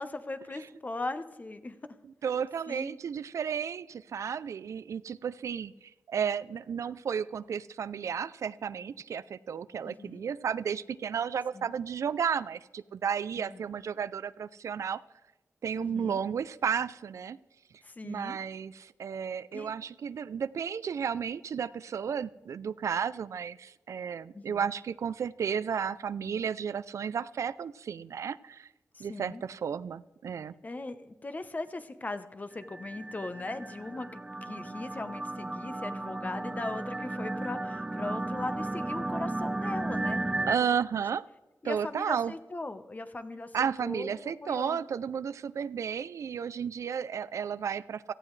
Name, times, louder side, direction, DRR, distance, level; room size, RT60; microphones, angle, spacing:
voice 1, 0.0-1.8 2.7-3.0 9.9-10.3 11.5-11.7 13.4-13.6 15.8-16.2 17.8-18.4 19.5-19.7 24.3-24.7 28.9-29.4 30.6-40.2 40.9-41.0 41.6-44.8, left 2 dB, 30° left, 10 dB, 1.0 m, -39 dB
voice 2, 2.2-15.0 15.6-17.4 18.0-28.7 29.0-30.5 40.5-41.2 41.6-42.3 43.5-48.1, right 7 dB, 90° right, 16 dB, 0.4 m, -33 dB
sound 1, 32.6-40.6, right 2 dB, 15° right, 0.4 m, -34 dB
17.5 x 14.5 x 3.3 m, 1.1 s
wide cardioid pair, 95°, 5 cm